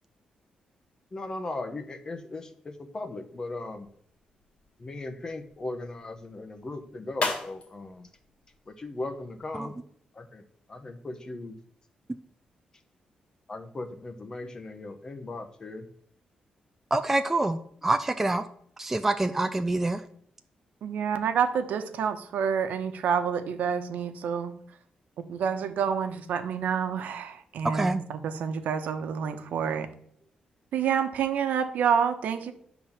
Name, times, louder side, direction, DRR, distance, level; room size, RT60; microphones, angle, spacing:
voice 1, 1.1-3.9 4.8-8.1 8.7-9.8 10.1-10.4 10.7-11.6 13.5-15.9, left 2 dB, 25° left, 8 dB, 0.9 m, -38 dB
sound 1, 3.7-9.5, left 3 dB, 45° left, 2.1 m, -39 dB
voice 2, 16.9-18.5 18.8-20.0 27.7-28.0, right 2 dB, 10° right, 8 dB, 0.4 m, -26 dB
voice 3, 20.8-24.5 25.3-29.9 30.7-32.5, right 7 dB, 85° right, 8 dB, 1.0 m, -28 dB
10.5 x 4.0 x 7.2 m, 0.64 s
wide cardioid pair, 150°, 3 cm